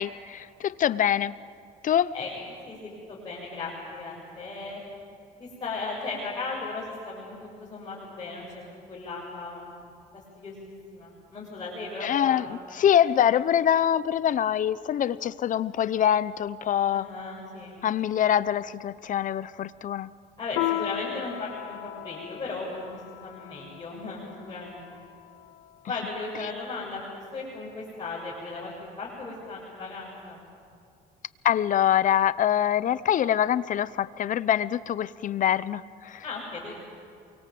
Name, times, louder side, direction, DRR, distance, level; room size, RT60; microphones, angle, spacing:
voice 1, 0.0-1.3 1.8-2.1 12.0-17.1 17.8-20.1 31.4-36.2, left 10 dB, 50° left, 17 dB, 0.8 m, -24 dB
voice 2, 2.6-4.8 5.4-8.6 8.9-9.7 10.1-12.5 16.9-17.8 20.4-24.8 25.9-27.0 27.3-30.4 36.2-36.7, left 3 dB, 25° left, -6 dB, 7.3 m, -36 dB
Piano, 20.6-25.5, left 16 dB, 85° left, 0.7 m, -35 dB
28.5 x 24.0 x 7.8 m, 2.5 s
cardioid pair, 110°, 17 cm